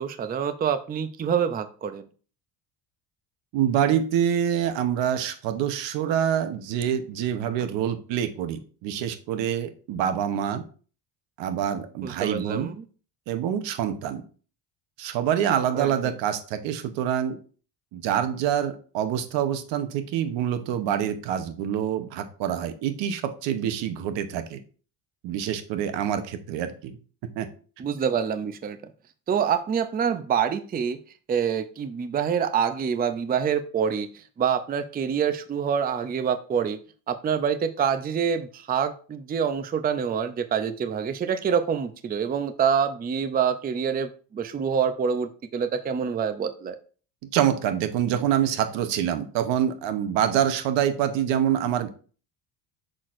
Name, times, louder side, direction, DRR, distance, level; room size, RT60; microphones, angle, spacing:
voice 1, 0.0-2.1 12.0-12.8 15.7-15.9 27.8-28.8 29.3-31.0 31.3-34.1 34.4-36.8 37.1-46.8, right 7 dB, 20° right, 10 dB, 0.5 m, -26 dB
voice 2, 3.5-10.6 11.4-12.7 13.3-14.2 15.0-17.4 17.9-24.6 25.2-27.0 27.2-27.5 47.3-51.9, right 9 dB, 80° right, 10 dB, 1.0 m, -26 dB
6.4 x 5.9 x 2.5 m, 0.39 s
cardioid pair, 125°, 43 cm